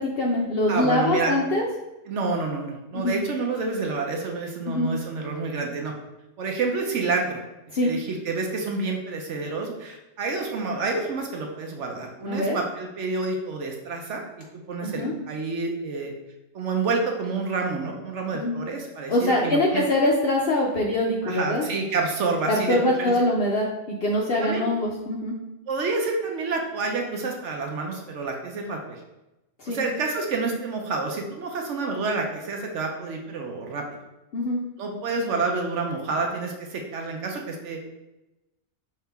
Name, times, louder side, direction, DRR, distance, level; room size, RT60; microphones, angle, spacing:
voice 1, 0.0-1.6 2.9-3.2 4.7-4.9 7.7-7.9 12.2-12.6 14.8-15.1 18.3-18.6 19.1-21.6 22.5-25.3 29.6-29.8 34.3-34.6, left 1 dB, 60° left, -1 dB, 0.6 m, -23 dB
voice 2, 0.7-1.3 2.1-5.9 6.4-7.4 7.8-14.2 14.5-16.1 16.5-19.8 21.2-23.1 24.4-24.6 25.7-29.0 29.7-33.8 34.8-37.9, right 3 dB, 65° right, 2 dB, 0.8 m, -28 dB
5.6 x 2.8 x 3.4 m, 0.98 s
omnidirectional pair, 1.5 m